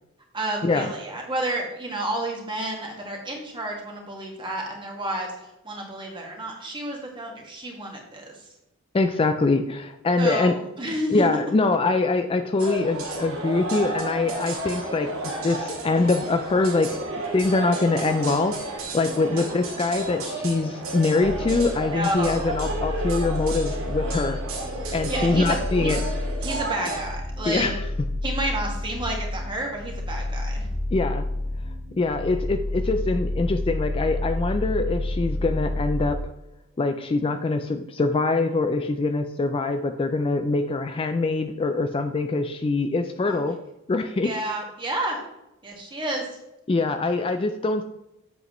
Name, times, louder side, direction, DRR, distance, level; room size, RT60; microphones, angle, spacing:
voice 1, 0.3-8.4 10.2-11.2 19.3-19.5 21.9-22.5 25.1-25.9 26.4-27.7 28.2-30.7 43.2-43.4 44.2-45.2 45.6-46.3, right 1 dB, 25° right, -1 dB, 1.8 m, -30 dB
voice 2, 8.9-10.6 11.1-24.4 24.9-26.0 27.5-27.9 30.9-31.3 32.0-36.2 36.8-43.6 43.9-44.3 46.7-47.8, left 3 dB, 25° left, 8 dB, 0.4 m, -24 dB
sound 1, 12.6-27.0, right 2 dB, 90° right, 2.0 m, -32 dB
sound 2, 21.2-36.0, left 1 dB, 70° right, 1.6 m, -30 dB
7.9 x 7.4 x 3.1 m, 0.91 s
head